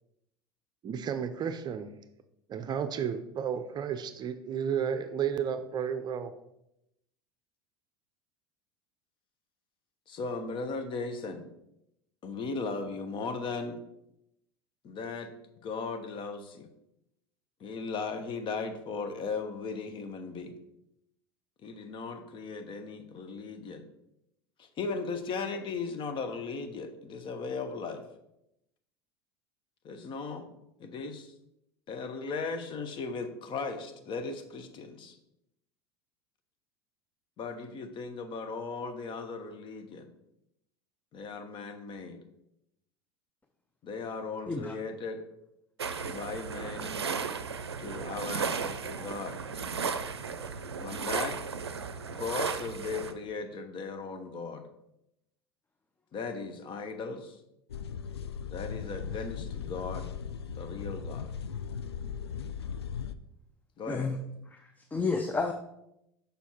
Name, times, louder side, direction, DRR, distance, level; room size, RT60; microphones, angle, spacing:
voice 1, 0.8-1.9 2.5-6.3, right 7 dB, 35° right, 9 dB, 0.6 m, -32 dB
voice 2, 10.1-11.5 12.2-13.8 14.8-15.3 15.6-16.7 17.6-20.6 21.6-23.9 24.6-28.0 29.8-30.5 30.8-31.3 31.9-35.1 37.4-40.1 41.1-42.2 43.8-45.2 46.1-47.0 47.8-49.4 50.8-51.4 52.2-54.6 56.1-57.4 58.5-60.1 60.5-61.3 63.8-64.1, left 4 dB, 40° left, 8 dB, 1.0 m, -37 dB
sound 1, 45.8-53.1, right 5 dB, 85° right, 0.5 m, -35 dB
sound 2, 57.7-63.1, left 7 dB, 80° left, 0.4 m, -38 dB
voice 3, 63.9-64.2 64.5-65.5, left 4 dB, 10° left, 6 dB, 0.6 m, -31 dB
6.9 x 5.2 x 4.5 m, 0.83 s
figure-of-eight pair, 80°, 13 cm